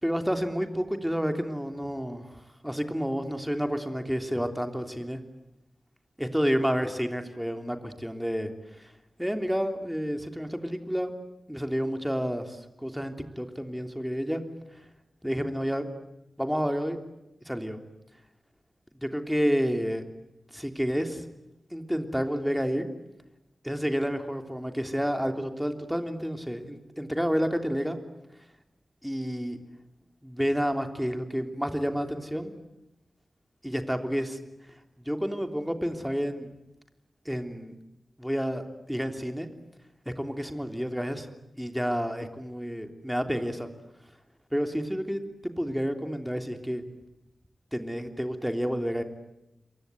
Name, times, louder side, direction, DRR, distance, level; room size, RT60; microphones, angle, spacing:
voice 1, 0.0-5.2 6.2-8.9 9.2-11.1 11.5-14.4 15.2-15.9 16.4-17.0 17.4-17.8 19.0-20.0 20.5-21.2 21.7-22.9 23.6-28.0 29.0-29.6 30.2-32.5 33.6-34.4 35.0-36.5 37.2-37.8 38.2-39.5 40.0-41.3 41.6-43.7 44.5-46.8 47.7-49.0, equal, ahead, 6 dB, 3.3 m, -30 dB
27.5 x 23.5 x 9.3 m, 0.90 s
wide cardioid pair, 100°, 0 cm